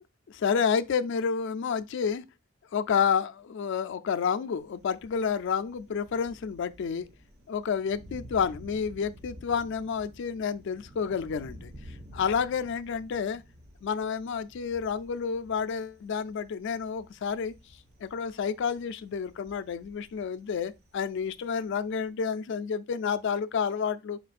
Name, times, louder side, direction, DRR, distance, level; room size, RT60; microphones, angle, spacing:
voice 1, 0.3-2.2 2.7-7.1 7.5-11.7 12.1-13.4 13.8-17.5 18.0-24.2, left 6 dB, 60° left, 0.3 m, -30 dB
Thunder, 4.6-22.1, equal, 55° right, 1.2 m, -51 dB
4.4 x 4.1 x 2.3 m
head